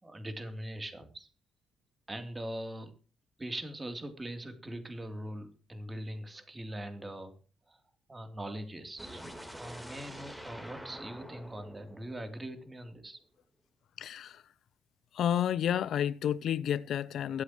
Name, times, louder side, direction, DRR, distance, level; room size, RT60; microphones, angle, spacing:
voice 1, 0.0-1.3 2.1-2.9 3.4-7.3 7.7-7.8 8.1-13.2, right 1 dB, 20° right, 3.3 m, -41 dB
sound 1, 9.0-13.0, equal, 5° right, 3.7 m, -47 dB
voice 2, 14.0-14.4 15.1-17.4, left 10 dB, 65° left, 0.6 m, -30 dB
22.5 x 8.3 x 3.1 m
hypercardioid pair, 55°, 0 cm